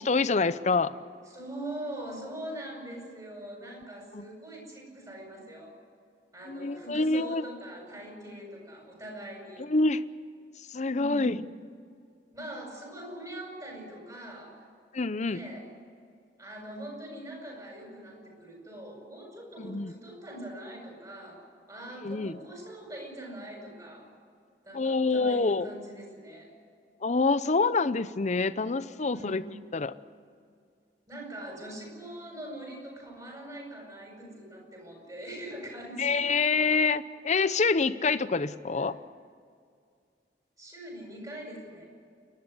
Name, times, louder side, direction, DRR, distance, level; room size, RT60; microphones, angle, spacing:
voice 1, 0.1-0.9 4.1-4.2 6.5-7.4 9.6-10.0 10.7-11.4 14.9-15.4 19.6-19.9 22.0-22.4 24.7-25.7 27.0-29.4 29.7-29.9 36.0-39.0, left 3 dB, 40° left, 14 dB, 0.7 m, -26 dB
voice 2, 1.3-5.7 6.3-9.6 10.9-11.4 12.3-14.5 15.2-15.7 16.4-24.1 24.6-26.5 29.1-29.6 31.1-36.2 38.7-39.0 40.6-41.9, right 1 dB, 20° right, 0 dB, 7.9 m, -42 dB
29.0 x 12.5 x 9.8 m, 2.3 s
head